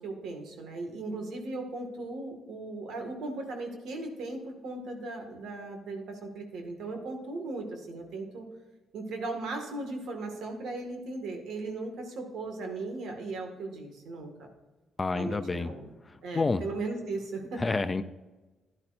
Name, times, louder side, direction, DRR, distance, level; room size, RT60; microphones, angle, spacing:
voice 1, 0.0-8.4 8.9-14.3 15.1-15.9 16.2-17.6, right 2 dB, 75° right, 3 dB, 2.0 m, -37 dB
voice 2, 15.0-15.7 16.3-16.6 17.6-18.0, left 3 dB, 25° left, 11 dB, 0.5 m, -28 dB
12.0 x 11.0 x 2.7 m, 1.2 s
cardioid pair, 90°, 0 cm